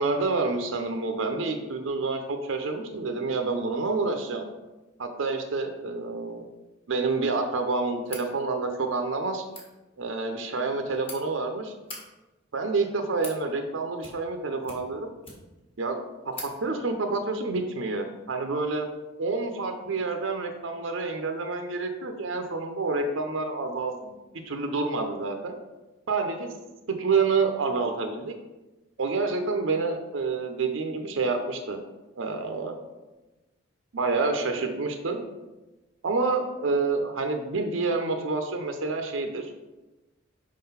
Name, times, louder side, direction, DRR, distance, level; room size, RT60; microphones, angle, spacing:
voice 1, 0.0-4.4 5.0-6.4 6.9-9.4 10.0-11.7 12.5-15.1 15.8-16.0 16.3-16.4 16.6-18.9 19.2-24.1 24.4-25.5 26.1-26.5 26.9-28.3 29.0-31.8 32.2-32.8 33.9-35.2 36.0-39.5, right 3 dB, 75° right, 5 dB, 0.6 m, -28 dB
sound 1, 8.0-8.3 9.4-9.7 10.6-11.2 11.7-12.0 12.8-13.4 14.0-14.4 14.6-15.6 15.9-16.0 16.3-16.5, left 2 dB, 30° left, 1.3 m, -42 dB
4.9 x 3.8 x 5.6 m, 1.1 s
head